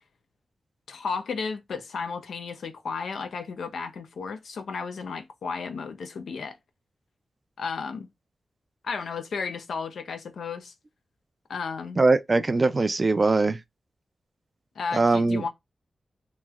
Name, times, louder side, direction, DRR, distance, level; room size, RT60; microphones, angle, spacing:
voice 1, 0.9-6.6 7.6-8.1 8.8-10.7 11.5-12.0 14.8-15.5, left 5 dB, 90° left, 0.5 m, -33 dB
voice 2, 12.0-13.6 14.9-15.5, right 3 dB, 40° right, 0.4 m, -21 dB
3.1 x 2.1 x 3.5 m
cardioid pair, 70°, 0 cm